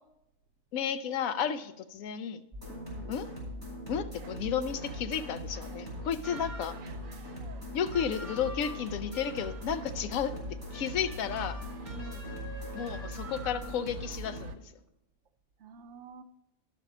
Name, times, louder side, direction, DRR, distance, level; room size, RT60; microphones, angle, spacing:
voice 1, 0.7-2.4 3.1-3.3 3.9-6.8 7.7-10.3 10.7-11.6 12.7-14.6, left 8 dB, 85° left, 11 dB, 1.0 m, -33 dB
sound 1, 2.5-14.5, left 1 dB, 20° left, 4.4 m, -41 dB
voice 2, 2.7-3.1 6.8-7.1 11.8-12.4 15.6-16.2, right 4 dB, 70° right, 8 dB, 0.8 m, -48 dB
sound 2, 4.1-14.6, right 1 dB, 85° right, 1.1 m, -49 dB
sound 3, 6.2-6.9 7.9-9.8 10.7-13.9, right 1 dB, 10° right, 2.1 m, -47 dB
12.0 x 5.7 x 4.9 m, 0.86 s
omnidirectional pair, 1.4 m